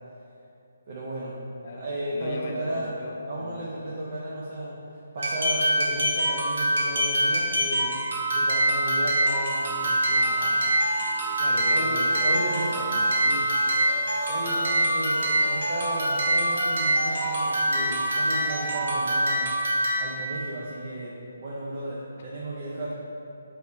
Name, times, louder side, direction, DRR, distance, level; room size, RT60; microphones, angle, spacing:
voice 1, 0.9-1.4 1.7-3.0 3.2-4.8 5.1-10.7 11.7-12.7 13.1-13.5 14.3-19.5 19.8-22.9, right 1 dB, 40° right, -6 dB, 0.5 m, -34 dB
voice 2, 1.6-3.9 11.3-12.4 12.7-13.4, left 3 dB, 40° left, 1 dB, 0.4 m, -39 dB
sound 1, 5.2-20.2, right 1 dB, 55° right, 1.1 m, -25 dB
sound 2, 9.2-18.8, left 1 dB, 15° left, 0.9 m, -41 dB
3.5 x 2.7 x 4.3 m, 2.8 s
hypercardioid pair, 170°, 0 cm